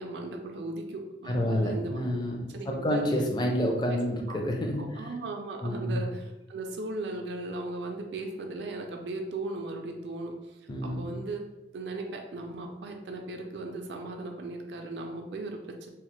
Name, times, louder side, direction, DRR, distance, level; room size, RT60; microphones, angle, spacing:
voice 1, 0.0-2.0 2.5-3.0 4.8-10.3 10.8-11.4 11.7-15.9, right 2 dB, 70° right, 3 dB, 0.4 m, -37 dB
voice 2, 1.3-5.1 5.6-6.0 10.7-11.2, equal, 25° left, 0 dB, 0.4 m, -29 dB
3.0 x 2.0 x 3.0 m, 0.98 s
head